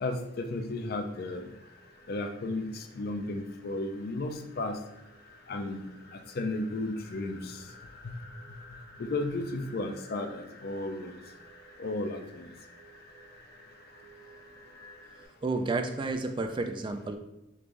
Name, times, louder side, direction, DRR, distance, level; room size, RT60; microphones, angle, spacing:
voice 1, 0.0-1.5 2.1-4.8 5.5-5.8 6.1-7.6 8.0-8.1 9.0-11.2 11.8-12.5, left 2 dB, 50° left, 5 dB, 0.4 m, -34 dB
sound 1, 1.1-15.3, left 1 dB, 25° left, 1.5 m, -54 dB
voice 2, 15.4-17.2, right 3 dB, 25° right, 7 dB, 0.3 m, -31 dB
5.2 x 3.2 x 2.5 m, 0.91 s
head